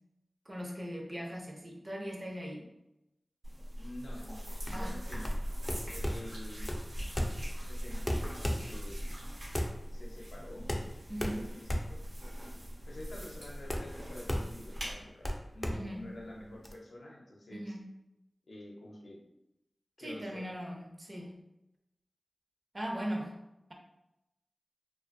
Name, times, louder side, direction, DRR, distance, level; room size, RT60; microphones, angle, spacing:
voice 1, 0.5-2.7 4.7-5.0 11.1-11.5 15.7-16.2 17.5-17.8 20.0-21.4 22.7-23.4, equal, 35° right, 0 dB, 0.5 m, -39 dB
sound 1, 3.4-14.9, equal, 80° right, 1.0 m, -41 dB
voice 2, 3.8-5.3 5.9-6.7 7.7-9.1 9.9-10.6 11.3-12.0 12.9-15.3 15.5-17.8 18.5-19.2 20.0-20.5, left 1 dB, 90° left, -2 dB, 0.5 m, -48 dB
sound 2, 4.6-16.7, equal, 30° left, 0.3 m, -37 dB
2.4 x 2.2 x 2.5 m, 0.91 s
wide cardioid pair, 60°, 0 cm